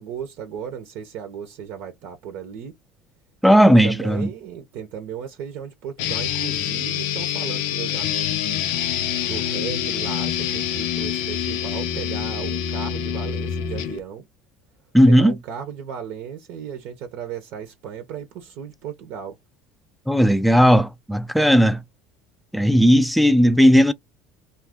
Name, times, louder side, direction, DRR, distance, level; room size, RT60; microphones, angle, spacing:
voice 1, 0.0-2.8 3.6-8.6 9.2-14.3 15.0-19.4, right 8 dB, 70° right, 0.7 m, -35 dB
voice 2, 3.4-4.3 14.9-15.4 20.1-21.8 22.5-23.9, equal, ahead, 0.4 m, -15 dB
sound 1, 6.0-14.0, left 9 dB, 80° left, 0.5 m, -26 dB
2.5 x 2.3 x 3.4 m
supercardioid pair, 100°, 4 cm